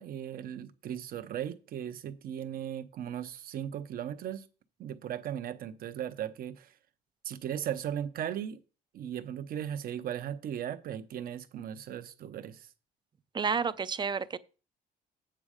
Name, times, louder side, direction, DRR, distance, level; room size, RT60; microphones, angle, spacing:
voice 1, 0.0-4.4 4.8-6.7 7.2-8.6 8.9-12.7, right 10 dB, 60° right, 0.9 m, -37 dB
voice 2, 13.3-14.4, right 5 dB, 25° right, 0.5 m, -30 dB
8.8 x 6.2 x 5.0 m
cardioid pair, 110°, 17 cm